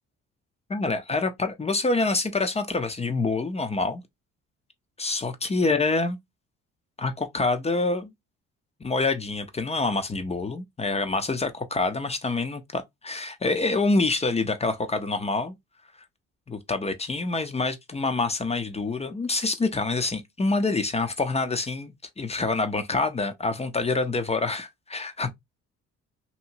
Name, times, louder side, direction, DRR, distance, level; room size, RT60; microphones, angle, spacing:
voice 1, 0.7-4.0 5.0-6.2 7.0-8.1 8.8-15.6 16.5-25.3, left 3 dB, 20° left, 0.5 m, -26 dB
2.8 x 2.7 x 2.6 m
cardioid pair, 90°, 30 cm